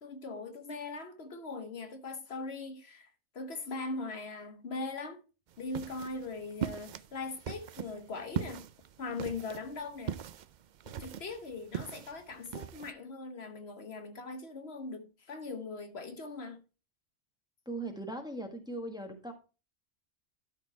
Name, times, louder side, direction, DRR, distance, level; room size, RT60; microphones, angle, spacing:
voice 1, 0.0-3.1 3.3-5.2 5.6-8.6 9.0-10.2 11.0-16.6, left 3 dB, 65° left, 1.2 m, -40 dB
sound 1, 5.5-12.9, right 9 dB, 60° right, 0.5 m, -40 dB
voice 2, 17.6-19.3, right 2 dB, 5° right, 1.3 m, -39 dB
12.0 x 4.4 x 4.4 m
omnidirectional pair, 1.2 m